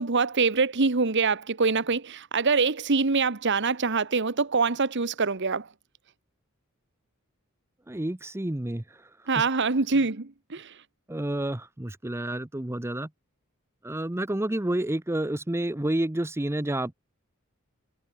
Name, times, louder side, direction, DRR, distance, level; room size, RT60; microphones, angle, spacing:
voice 1, 0.0-5.7 9.3-10.7, right 4 dB, 60° right, 1.2 m, -24 dB
voice 2, 7.9-9.3 11.1-13.1 13.8-16.9, right 1 dB, 10° right, 0.7 m, -30 dB
head